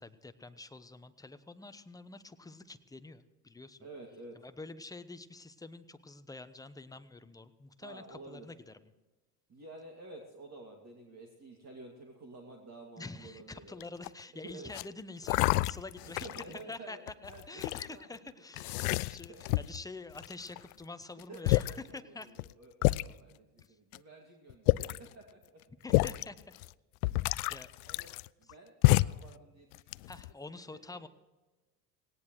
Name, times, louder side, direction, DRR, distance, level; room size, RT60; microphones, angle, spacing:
voice 1, 0.0-3.8 4.4-8.7 13.0-16.3 16.7-22.3 23.7-23.8 25.8-26.6 27.5-27.7 30.1-31.1, left 3 dB, 5° left, 11 dB, 0.9 m, -47 dB
voice 2, 3.8-4.4 7.8-8.5 9.5-13.8 14.3-15.0 16.0-17.0 17.2-18.2 18.6-19.0 19.3-19.6 21.1-25.7 27.8-28.1 28.4-31.1, right 2 dB, 30° right, 1 dB, 2.5 m, -51 dB
sound 1, 13.8-14.2 14.7-14.8 15.3-16.6 17.1-17.9 18.6-19.8 20.2-20.7 21.2-21.3 21.5-21.8 22.4-22.5 22.8-23.1 23.9-24.0 24.5-25.1 25.9-26.2 26.6-26.7 27.0-28.5 28.8-29.3 29.7-30.3, left 21 dB, 65° left, 0.5 m, -28 dB
18.0 x 18.0 x 3.2 m, 1.2 s
hypercardioid pair, 70°, 49 cm